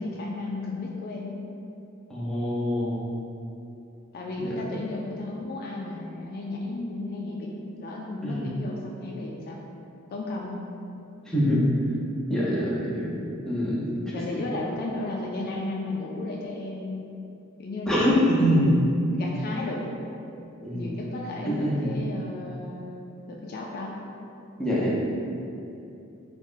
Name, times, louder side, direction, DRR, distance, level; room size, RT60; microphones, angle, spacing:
voice 1, 0.0-1.4 4.1-9.6 10.1-10.6 14.1-17.1 17.6-18.4 19.2-19.8 20.7-23.9, left 2 dB, 45° left, -1 dB, 0.3 m, -34 dB
voice 2, 2.1-3.0 4.4-4.8 8.2-8.4 11.3-11.6 12.3-14.4 17.9-18.7 20.6-20.9 21.5-21.9 24.6-24.9, equal, 5° left, -8 dB, 0.6 m, -25 dB
3.5 x 2.1 x 3.7 m, 2.7 s
head